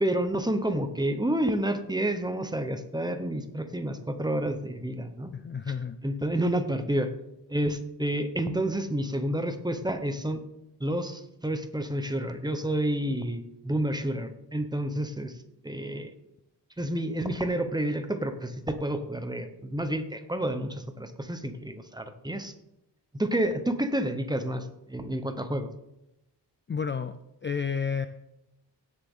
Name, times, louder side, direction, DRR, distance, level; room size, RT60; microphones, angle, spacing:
voice 1, 0.0-5.3 6.0-7.1 7.5-10.4 10.8-15.3 15.6-16.1 16.8-22.5 23.1-25.7, right 1 dB, 10° right, 8 dB, 0.9 m, -29 dB
voice 2, 5.3-6.0 26.7-27.1 27.4-28.1, left 6 dB, 30° left, 10 dB, 0.4 m, -30 dB
16.5 x 7.4 x 3.7 m, 0.87 s
wide cardioid pair, 135°, 42 cm